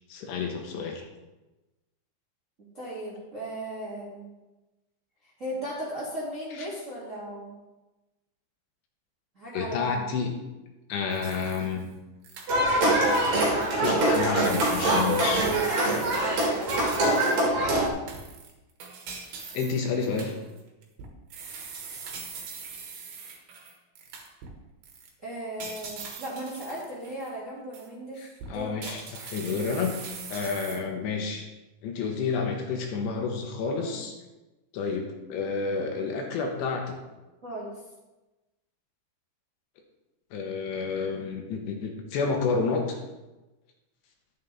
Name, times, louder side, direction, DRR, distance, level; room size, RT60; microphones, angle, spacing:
voice 1, 0.1-1.0 6.6-6.7 9.5-10.3 10.9-11.8 13.8-15.7 19.5-20.3 28.2-30.0 30.3-31.5 31.8-34.2 34.7-37.0 40.3-43.0, left 5 dB, 75° left, 2 dB, 3.0 m, -30 dB
voice 2, 2.7-4.3 5.4-7.6 9.3-10.0 19.9-20.3 25.2-28.9 33.8-33.9 37.4-37.8, right 1 dB, 30° right, -8 dB, 1.4 m, -37 dB
sound 1, 11.1-11.9 12.2-12.8 13.1-17.5 18.1-24.5 24.8-25.1 25.6-27.3 27.7-27.9 28.4-30.8, right 5 dB, 60° right, 3.0 m, -42 dB
sound 2, 12.5-17.9, right 1 dB, 45° right, 2.8 m, -24 dB
11.5 x 9.5 x 3.5 m, 1.1 s
omnidirectional pair, 5.6 m